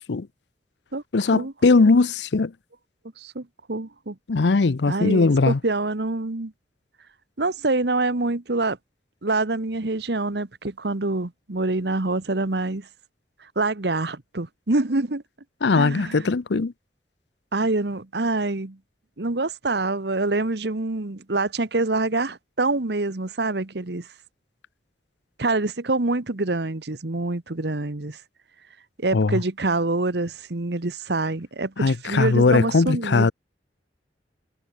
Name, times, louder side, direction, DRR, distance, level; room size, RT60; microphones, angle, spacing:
voice 1, 1.1-2.5 4.3-5.6 15.6-16.7 29.1-29.4 31.8-33.3, left 3 dB, 70° left, 0.6 m, -19 dB
voice 2, 3.2-4.2 4.9-6.5 7.4-8.8 9.2-12.9 13.4-15.2 15.8-16.3 17.5-18.8 19.2-24.1 25.4-28.2 29.0-33.3, right 2 dB, 65° right, 1.3 m, -26 dB
head